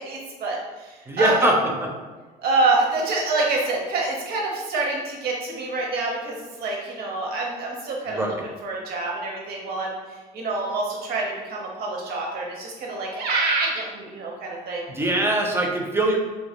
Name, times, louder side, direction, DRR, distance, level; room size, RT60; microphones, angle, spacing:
voice 1, 0.0-1.5 2.4-8.3 8.6-14.9, right 3 dB, 70° right, -1 dB, 0.7 m, -26 dB
voice 2, 1.1-1.9 8.1-8.3 14.9-16.2, right 1 dB, 15° right, 0 dB, 0.4 m, -22 dB
2.3 x 2.1 x 2.8 m, 1.2 s
cardioid pair, 110°, 17 cm